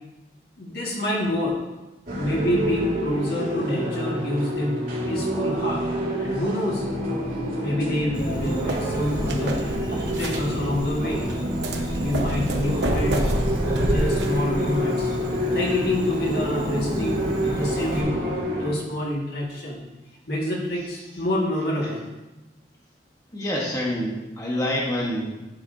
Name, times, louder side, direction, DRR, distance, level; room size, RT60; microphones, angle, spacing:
voice 1, 0.6-1.6 2.2-5.8 6.2-6.8 7.6-9.6 10.2-11.4 12.0-13.3 13.6-15.1 15.5-19.8 20.3-22.0, left 1 dB, 60° left, -3 dB, 1.9 m, -27 dB
sound 1, 2.1-18.7, equal, 55° right, 2.8 m, -28 dB
Insect, 8.1-18.0, equal, 25° right, 1.2 m, -34 dB
sound 2, 8.3-14.8, right 1 dB, 85° right, 1.0 m, -29 dB
voice 2, 23.3-25.4, left 1 dB, 20° left, -4 dB, 1.2 m, -27 dB
11.0 x 6.9 x 2.7 m, 1.1 s
head